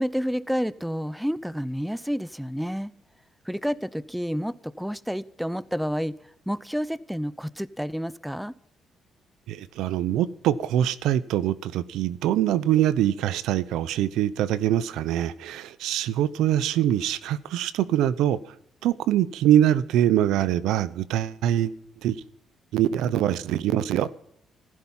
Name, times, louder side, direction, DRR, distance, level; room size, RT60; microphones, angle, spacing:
voice 1, 0.0-2.9 3.5-6.2 6.5-8.5, equal, ahead, 0.7 m, -29 dB
voice 2, 9.5-18.4 18.8-21.7 22.0-22.2 22.7-24.1, right 11 dB, 90° right, 0.8 m, -23 dB
15.5 x 14.5 x 5.6 m
cardioid pair, 90°, 0 cm